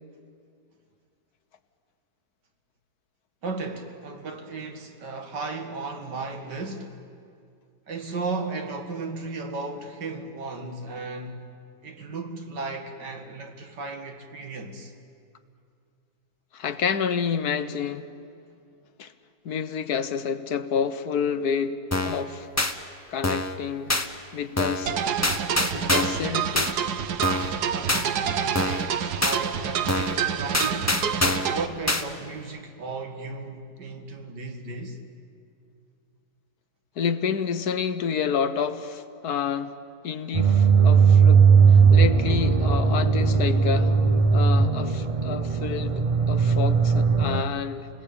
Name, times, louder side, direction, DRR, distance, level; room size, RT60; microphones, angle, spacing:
voice 1, 3.4-7.0 7.9-11.5 11.8-14.9 27.7-31.1 31.4-35.0, right 3 dB, 90° right, 2.6 m, -35 dB
voice 2, 16.5-18.1 19.0-19.1 19.4-21.8 22.0-22.5 23.1-26.9 37.0-39.7 40.0-43.9 44.3-47.9, left 7 dB, 65° left, 1.5 m, -29 dB
sound 1, 21.9-22.2 22.6-22.7 23.2-23.6 23.9-24.1 24.6-24.9 25.2-26.2 26.5-26.7 27.2-27.5 27.9-28.0 28.5-28.9 29.2-29.4 29.9-30.2 30.5-31.5 31.9-32.0, left 2 dB, 15° left, 0.8 m, -25 dB
sound 2, 24.9-31.7, right 8 dB, 70° right, 1.5 m, -28 dB
sound 3, 40.3-47.4, right 5 dB, 55° right, 0.3 m, -18 dB
29.5 x 19.5 x 8.7 m
omnidirectional pair, 1.8 m